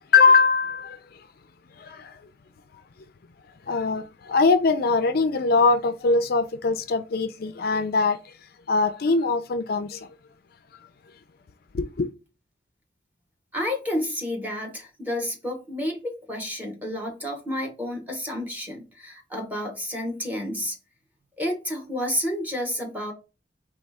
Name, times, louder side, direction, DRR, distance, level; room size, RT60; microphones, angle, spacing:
voice 1, 0.1-1.0 1.8-2.1 3.7-8.2 8.7-10.1 11.7-12.1, left 4 dB, 55° left, 0.4 m, -22 dB
voice 2, 13.5-20.8 21.4-23.1, left 1 dB, 10° right, 1.3 m, -30 dB
4.2 x 3.2 x 3.5 m
head